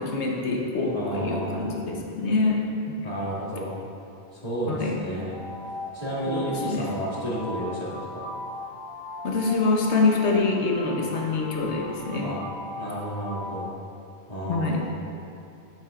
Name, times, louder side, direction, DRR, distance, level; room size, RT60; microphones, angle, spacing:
voice 1, 0.0-3.0 4.7-5.0 6.3-6.9 9.2-12.3 14.5-14.9, left 3 dB, 80° left, 0 dB, 1.2 m, -25 dB
voice 2, 0.9-1.6 3.0-3.7 4.3-5.4 5.9-8.3 12.2-12.4 12.8-13.6 14.3-14.9, right 1 dB, 35° left, -9 dB, 2.2 m, -31 dB
sound 1, 5.3-13.7, left 2 dB, ahead, 1.1 m, -38 dB
10.5 x 7.3 x 2.4 m, 2.5 s
omnidirectional pair, 1.1 m